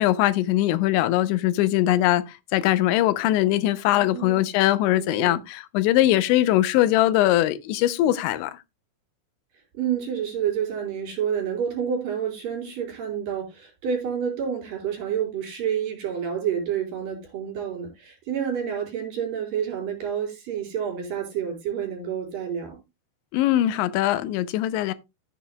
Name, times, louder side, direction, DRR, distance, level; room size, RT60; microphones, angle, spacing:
voice 1, 0.0-8.6 23.3-24.9, left 14 dB, 90° left, 3.0 m, -21 dB
voice 2, 3.9-4.5 5.0-5.4 9.7-22.8, right 8 dB, 55° right, 5.2 m, -29 dB
14.5 x 7.5 x 2.2 m
omnidirectional pair, 5.2 m